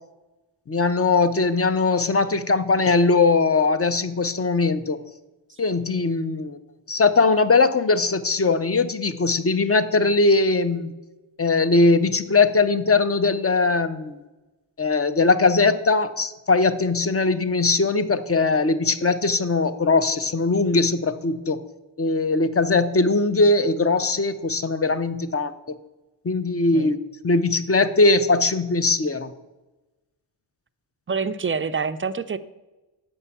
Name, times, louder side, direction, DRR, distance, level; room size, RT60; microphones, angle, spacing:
voice 1, 0.7-5.0 5.6-6.6 6.9-10.9 11.4-14.2 14.8-21.6 22.0-25.5 26.2-27.0 27.2-29.3, left 3 dB, 30° left, 11 dB, 0.5 m, -20 dB
voice 2, 31.1-32.4, right 5 dB, 30° right, 12 dB, 0.4 m, -26 dB
7.6 x 5.5 x 7.0 m, 1.1 s
wide cardioid pair, 95°, 49 cm